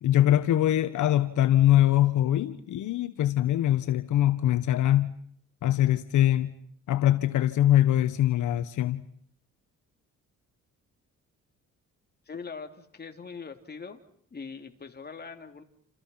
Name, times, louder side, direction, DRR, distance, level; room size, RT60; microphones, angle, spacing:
voice 1, 0.0-5.1 5.6-6.5 6.9-9.0, left 12 dB, 75° left, 1.5 m, -23 dB
voice 2, 12.3-14.0 14.3-15.6, left 5 dB, 30° left, 3.5 m, -41 dB
29.5 x 28.5 x 5.9 m
cardioid pair, 90°, 30 cm